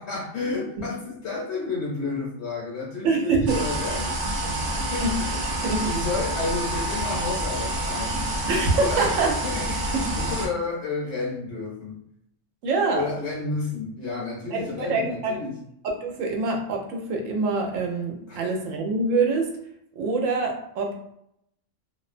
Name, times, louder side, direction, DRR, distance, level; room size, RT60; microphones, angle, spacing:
voice 1, 0.0-5.3 5.9-8.4 8.7-12.0 12.9-15.6 18.3-18.4, left 3 dB, 65° left, -4 dB, 0.8 m, -31 dB
voice 2, 3.0-3.6 5.0-5.9 8.5-9.4 10.0-10.1 12.6-13.1 14.5-15.4 15.8-19.5 20.0-21.1, right 3 dB, 90° right, 2 dB, 1.0 m, -25 dB
sound 1, 3.5-10.5, right 1 dB, 60° right, 0.6 m, -28 dB
2.4 x 2.1 x 2.4 m, 0.73 s
omnidirectional pair, 1.3 m